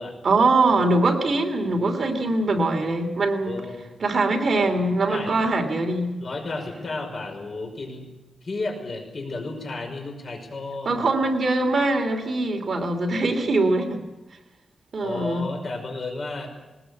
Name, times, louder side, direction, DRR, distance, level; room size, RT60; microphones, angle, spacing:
voice 1, 0.2-3.6 4.0-6.2 10.8-14.0 14.9-15.5, right 2 dB, 45° right, 3 dB, 2.9 m, -22 dB
voice 2, 3.4-3.9 5.1-5.4 6.2-8.1 8.4-10.9 13.1-13.3 15.0-16.5, left 3 dB, 50° left, 4 dB, 5.5 m, -33 dB
20.5 x 19.5 x 8.5 m, 1.1 s
wide cardioid pair, 120°, 0 cm